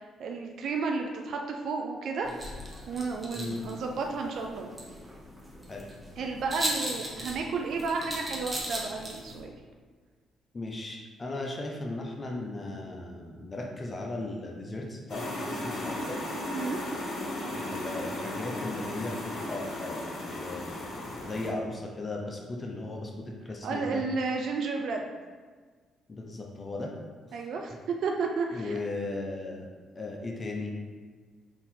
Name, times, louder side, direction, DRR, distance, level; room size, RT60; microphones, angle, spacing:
voice 1, 0.0-2.3 2.9-4.7 6.2-9.5 16.5-16.8 23.6-25.1 27.3-28.7, right 4 dB, 65° right, 2 dB, 0.4 m, -32 dB
sound 1, 2.2-9.4, right 1 dB, 15° right, 1.1 m, -38 dB
voice 2, 10.5-16.2 17.5-20.7 21.2-24.0 26.1-26.9 28.5-29.7 29.9-30.7, left 2 dB, 35° left, 0 dB, 0.7 m, -37 dB
sound 2, 15.1-21.5, left 1 dB, 55° left, 1.1 m, -35 dB
4.1 x 2.8 x 3.7 m, 1.5 s
hypercardioid pair, 45°, 0 cm